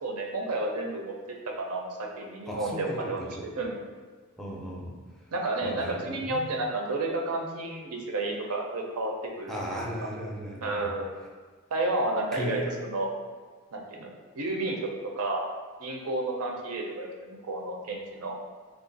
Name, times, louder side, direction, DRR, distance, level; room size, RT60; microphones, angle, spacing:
voice 1, 0.0-3.3 3.6-3.8 5.3-10.1 10.6-11.1 11.7-13.1 13.7-14.1 14.4-14.9 15.2-15.4 15.8-18.4, right 2 dB, 85° right, 1 dB, 0.6 m, -31 dB
voice 2, 2.5-3.1 4.4-4.9 5.6-6.5 9.5-10.8 12.3-12.6, equal, ahead, -3 dB, 0.5 m, -36 dB
3.2 x 2.4 x 3.9 m, 1.5 s
head